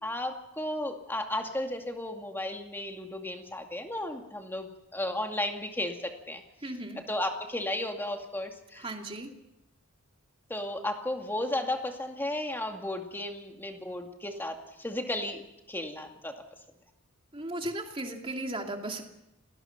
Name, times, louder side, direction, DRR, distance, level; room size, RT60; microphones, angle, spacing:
voice 1, 0.0-6.4 7.1-8.9 10.5-15.4 15.7-16.3, left 1 dB, 10° left, 3 dB, 2.3 m, -34 dB
voice 2, 6.6-7.0 8.8-9.3 17.3-19.0, right 1 dB, 25° right, 3 dB, 2.7 m, -36 dB
29.0 x 19.5 x 5.9 m, 0.86 s
head